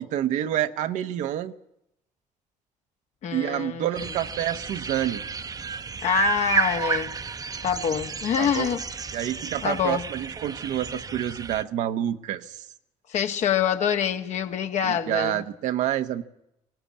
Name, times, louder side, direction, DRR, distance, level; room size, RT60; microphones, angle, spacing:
voice 1, 0.0-1.5 3.3-5.2 8.4-8.8 9.1-12.5 14.8-16.2, right 11 dB, 80° right, 1.1 m, -28 dB
voice 2, 3.2-4.1 6.0-7.1 7.6-8.8 9.6-10.0 13.1-15.4, left 8 dB, 65° left, 1.7 m, -25 dB
sound 1, 3.9-11.6, right 5 dB, 30° right, 0.8 m, -31 dB
20.0 x 18.0 x 8.6 m
supercardioid pair, 80°, 13 cm